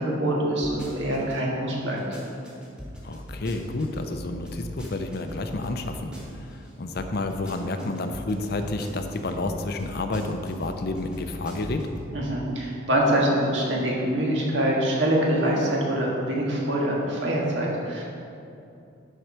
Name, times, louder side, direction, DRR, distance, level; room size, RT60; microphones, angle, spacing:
voice 1, 0.0-2.0 12.1-18.0, right 1 dB, 70° right, -3 dB, 1.8 m, -24 dB
sound 1, 0.6-1.4 1.8-6.7 7.0-12.1 12.5-12.6, equal, 5° right, 1.5 m, -40 dB
voice 2, 3.0-11.9, left 2 dB, 55° left, 6 dB, 0.6 m, -30 dB
11.5 x 4.6 x 4.5 m, 2.6 s
head